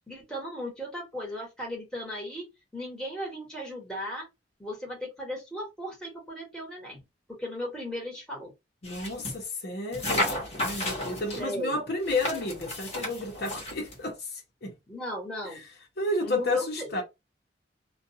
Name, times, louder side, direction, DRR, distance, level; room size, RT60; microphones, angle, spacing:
voice 1, 0.1-2.5 2.7-4.3 4.6-7.0 7.3-8.5 11.4-11.8 12.2-12.4 14.9-15.6 16.2-17.0, equal, 5° left, 1.2 m, -36 dB
voice 2, 8.8-14.3 14.6-14.7 15.4-15.6 16.0-17.0, left 2 dB, 65° left, 0.9 m, -31 dB
sound 1, 8.8-9.4 9.9-11.4 12.0-14.0, left 1 dB, 40° left, 1.1 m, -33 dB
2.5 x 2.3 x 2.7 m
head